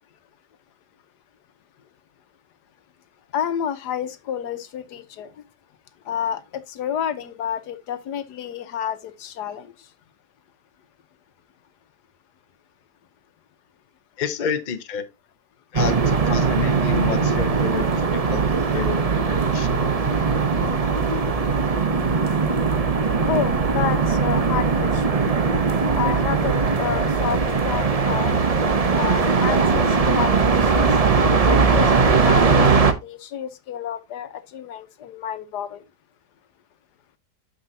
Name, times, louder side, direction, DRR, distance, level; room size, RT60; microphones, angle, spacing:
voice 1, 3.3-5.3 6.1-9.7 23.2-25.2 25.9-28.4 28.9-30.9 31.4-32.7 33.0-35.8, left 9 dB, 85° left, 1.5 m, -30 dB
voice 2, 14.2-15.0 15.7-18.4 18.7-19.0 19.3-19.7, left 6 dB, 35° left, 0.8 m, -29 dB
sound 1, 15.7-32.9, right 5 dB, 35° right, 0.6 m, -20 dB
9.0 x 6.5 x 2.7 m
omnidirectional pair, 1.7 m